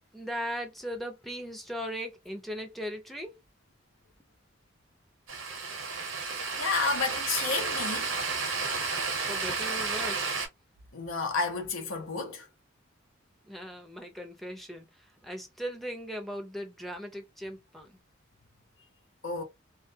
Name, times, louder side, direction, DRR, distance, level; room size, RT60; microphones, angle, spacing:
voice 1, 0.1-3.3 9.3-10.3 13.4-18.0, equal, ahead, 0.5 m, -38 dB
sound 1, 5.3-10.5, right 4 dB, 85° right, 0.8 m, -32 dB
voice 2, 6.6-8.1 10.9-12.5 19.2-19.4, left 4 dB, 85° left, 0.7 m, -31 dB
2.3 x 2.2 x 2.6 m
head